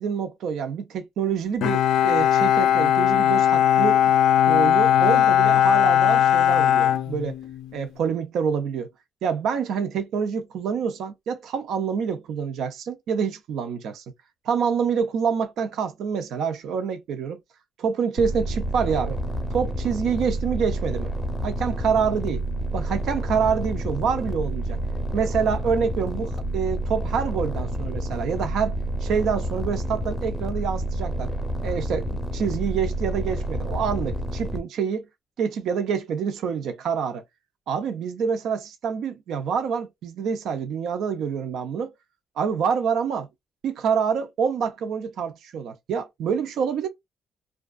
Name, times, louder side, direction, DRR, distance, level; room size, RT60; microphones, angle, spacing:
voice 1, 0.0-4.0 4.5-7.4 7.7-8.9 9.2-14.0 14.5-17.4 17.8-19.2 19.5-21.1 21.4-22.4 22.7-24.8 25.1-28.7 29.0-31.3 31.6-35.0 35.4-37.2 37.7-41.9 42.4-43.3 43.6-46.9, right 6 dB, 75° right, 0.5 m, -26 dB
Bowed string instrument, 1.6-7.8, left 10 dB, 80° left, 0.3 m, -19 dB
sound 1, 18.2-34.6, right 1 dB, 20° left, 0.6 m, -29 dB
2.4 x 2.3 x 2.3 m
cardioid pair, 90°, 0 cm